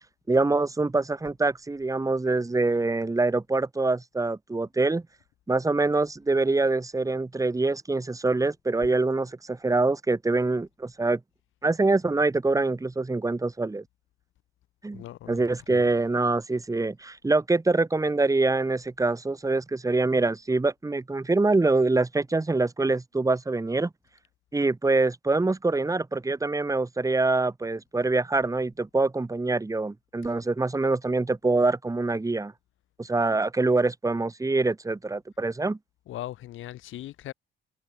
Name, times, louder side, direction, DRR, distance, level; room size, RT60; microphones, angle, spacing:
voice 1, 0.3-5.0 5.5-11.2 11.6-13.8 14.8-23.9 24.5-32.5 33.0-35.8, right 3 dB, 15° right, 2.1 m, -25 dB
voice 2, 14.9-16.0 30.2-30.4 36.1-37.3, left 14 dB, 80° left, 3.2 m, -40 dB
cardioid pair, 90°, 20 cm